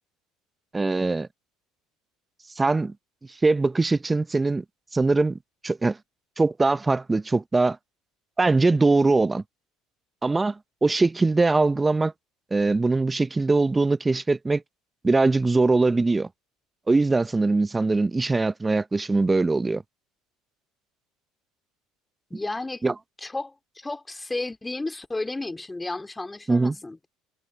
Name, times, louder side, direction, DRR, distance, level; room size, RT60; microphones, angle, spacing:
voice 1, 0.7-1.3 2.6-2.9 3.4-4.6 4.9-5.4 5.6-6.0 6.4-7.8 8.4-9.4 10.2-12.1 12.5-14.6 15.0-16.3 16.9-19.8 22.8-22.9 26.5-26.8, right 3 dB, 20° right, 0.7 m, -22 dB
voice 2, 22.3-22.8 23.2-27.0, left 2 dB, 15° left, 2.3 m, -33 dB
hypercardioid pair, 65°, 0 cm